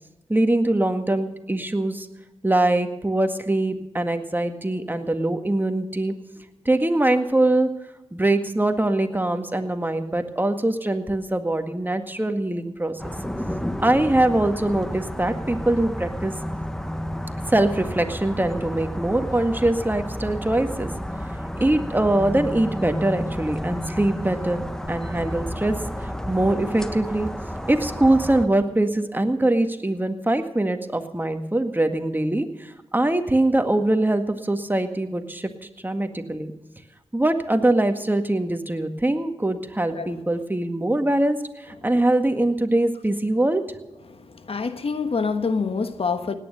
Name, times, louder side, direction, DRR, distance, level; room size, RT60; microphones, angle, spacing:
voice 1, 0.3-2.1 2.4-6.1 6.7-7.7 8.1-13.0 13.8-16.3 17.5-20.9 21.6-25.7 26.0-27.3 27.7-35.5 35.8-36.5 37.1-41.4 41.6-43.8, right 1 dB, 15° right, 7 dB, 1.8 m, -23 dB
sound 1, 13.0-28.5, equal, 5° left, 1.3 m, -31 dB
voice 2, 44.1-46.3, left 4 dB, 60° left, 9 dB, 1.3 m, -27 dB
18.0 x 9.9 x 6.6 m, 1.1 s
cardioid pair, 40°, 11 cm